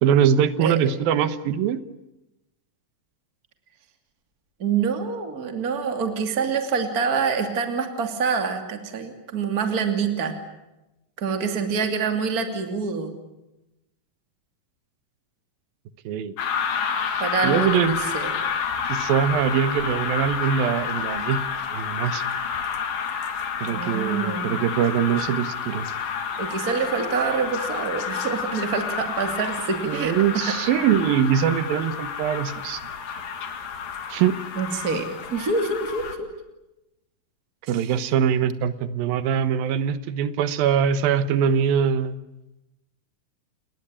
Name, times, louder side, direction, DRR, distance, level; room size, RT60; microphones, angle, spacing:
voice 1, 0.0-1.8 16.0-16.3 17.1-18.0 18.9-22.2 23.6-25.9 29.9-32.8 34.1-34.4 37.7-42.2, right 8 dB, 80° right, 13 dB, 3.0 m, -23 dB
voice 2, 4.6-10.4 11.2-13.2 17.2-18.4 23.7-24.5 26.4-30.4 34.5-36.3 37.7-38.1, right 5 dB, 25° right, 5 dB, 2.8 m, -26 dB
sound 1, 16.4-36.2, left 6 dB, 75° left, 3.9 m, -30 dB
29.5 x 21.5 x 8.7 m, 0.96 s
omnidirectional pair, 4.1 m